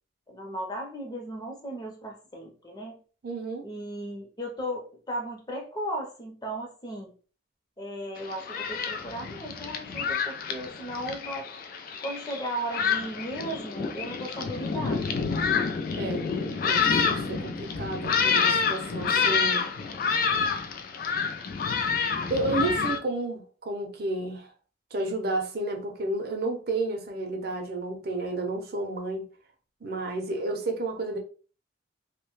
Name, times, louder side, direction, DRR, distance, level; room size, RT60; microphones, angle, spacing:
voice 1, 0.3-3.0 3.6-7.1 7.8-11.5 12.0-15.1, right 1 dB, 20° left, 0.7 m, -36 dB
voice 2, 3.2-3.7 16.0-16.2 16.6-19.6 22.3-24.5 24.9-29.3 29.8-31.2, right 2 dB, 55° right, 0.6 m, -31 dB
Thunderstorm, 8.2-23.0, left 5 dB, 50° left, 0.3 m, -28 dB
2.7 x 2.2 x 3.0 m
head